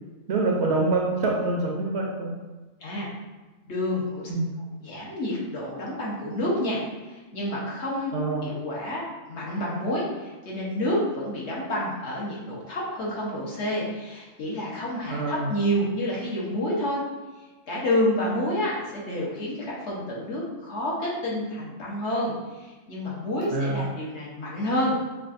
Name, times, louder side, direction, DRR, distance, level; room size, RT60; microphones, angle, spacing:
voice 1, 0.3-2.3 4.3-4.5 8.1-8.4 15.1-15.5 23.5-23.8, right 3 dB, 65° right, -1 dB, 0.8 m, -25 dB
voice 2, 3.7-4.3 4.8-8.1 8.4-17.0 17.7-25.0, left 1 dB, 60° left, -5 dB, 1.2 m, -29 dB
5.0 x 2.4 x 2.5 m, 1.2 s
omnidirectional pair, 1.4 m